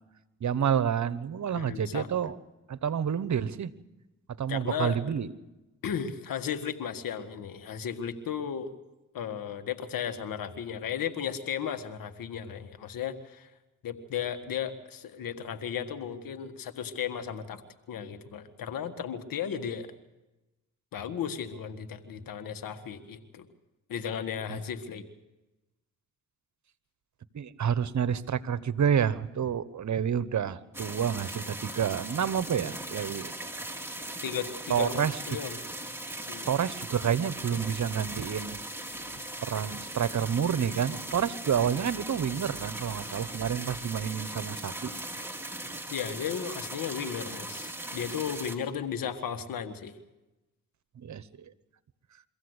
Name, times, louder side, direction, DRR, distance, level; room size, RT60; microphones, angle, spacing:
voice 1, 0.4-2.4 2.7-3.7 4.4-5.3 24.5-24.6 27.3-33.3 33.6-33.7 34.7-35.2 36.5-38.6 39.4-44.9 51.0-51.2, right 8 dB, 55° right, 15 dB, 1.1 m, -29 dB
voice 2, 1.5-2.1 4.5-5.0 5.8-8.7 9.1-13.5 13.8-17.6 17.9-19.9 20.9-23.5 23.9-25.1 34.2-35.6 36.3-36.5 45.9-49.9, left 8 dB, 80° left, 9 dB, 1.7 m, -35 dB
sound 1, 30.7-48.6, right 1 dB, 5° right, 2.7 m, -39 dB
24.0 x 15.5 x 8.0 m, 1.0 s
cardioid pair, 55°, 33 cm